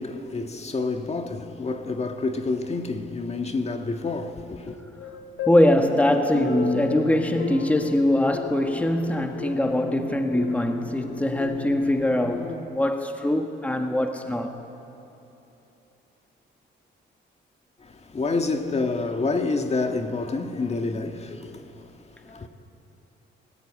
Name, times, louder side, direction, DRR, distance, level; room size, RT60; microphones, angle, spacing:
voice 1, 0.0-4.8 17.8-22.5, left 3 dB, 30° left, 1.7 m, -28 dB
sound 1, 4.7-12.6, left 5 dB, 75° left, 1.6 m, -34 dB
voice 2, 5.5-14.5, left 1 dB, 5° left, 1.5 m, -22 dB
28.5 x 15.0 x 8.7 m
cardioid pair, 90°, 20 cm